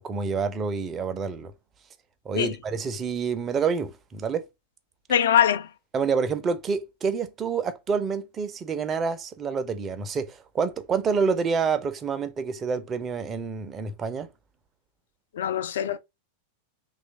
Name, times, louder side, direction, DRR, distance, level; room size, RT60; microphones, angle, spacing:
voice 1, 0.0-1.5 2.2-4.5 5.9-14.3, right 5 dB, 25° right, 0.5 m, -28 dB
voice 2, 5.1-5.7 15.3-16.0, left 9 dB, 60° left, 0.4 m, -22 dB
3.0 x 2.4 x 4.0 m
figure-of-eight pair, 90°, 0 cm